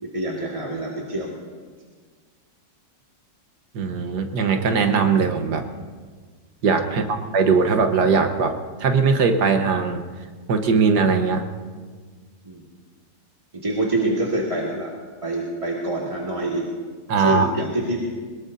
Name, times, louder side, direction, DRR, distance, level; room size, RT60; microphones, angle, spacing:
voice 1, 0.0-1.3 6.9-7.0 12.4-12.6 13.5-14.9 15.2-16.6 17.2-18.0, right 2 dB, 20° right, -4 dB, 1.9 m, -26 dB
voice 2, 3.7-5.6 6.6-10.0 10.5-11.4 17.1-17.5, right 5 dB, 70° right, 6 dB, 1.7 m, -20 dB
22.0 x 21.0 x 2.7 m, 1.5 s
omnidirectional pair, 1.9 m